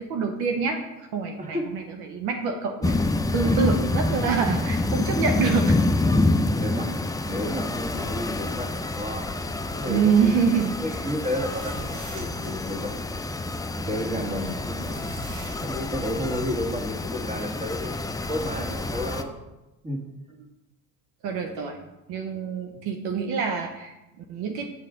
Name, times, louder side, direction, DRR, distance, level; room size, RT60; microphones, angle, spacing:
voice 1, 0.0-3.0 3.3-5.8 9.9-11.1 11.3-11.8 14.2-14.4 21.2-21.8 22.1-24.7, right 5 dB, 65° right, 4 dB, 0.9 m, -26 dB
voice 2, 1.4-1.7 3.4-3.6 5.6-5.8 6.5-9.3 9.7-10.4 10.8-13.1 13.7-15.1 15.6-19.4 19.8-20.0 22.7-22.8, left 1 dB, 15° right, 2 dB, 1.8 m, -32 dB
sound 1, 2.8-19.2, left 2 dB, 10° left, 0.5 m, -27 dB
sound 2, 11.2-12.8 14.3-16.1, right 2 dB, 80° right, 2.5 m, -42 dB
7.4 x 6.5 x 3.8 m, 0.99 s
hypercardioid pair, 65°, 42 cm